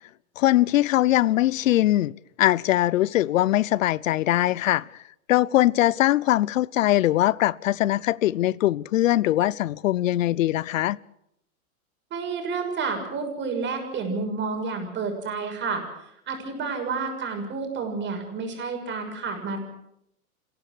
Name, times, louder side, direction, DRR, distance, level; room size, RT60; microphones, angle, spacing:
voice 1, 0.4-2.1 2.4-4.9 5.3-11.0, left 15 dB, 65° left, 0.8 m, -21 dB
voice 2, 12.1-15.8 16.3-19.6, right 4 dB, 25° right, 6.6 m, -30 dB
30.0 x 16.5 x 6.3 m
hypercardioid pair, 120°, 43 cm